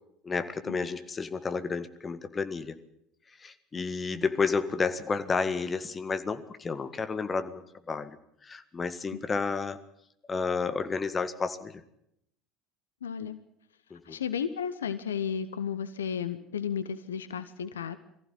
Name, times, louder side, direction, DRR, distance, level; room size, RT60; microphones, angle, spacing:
voice 1, 0.2-2.8 3.4-8.2 8.4-9.8 10.3-11.8 13.9-14.2, left 4 dB, 25° left, 11 dB, 1.8 m, -31 dB
voice 2, 13.0-13.4 14.0-18.0, left 7 dB, 75° left, 13 dB, 0.9 m, -33 dB
22.5 x 15.0 x 9.1 m, 0.77 s
figure-of-eight pair, 65°, 0 cm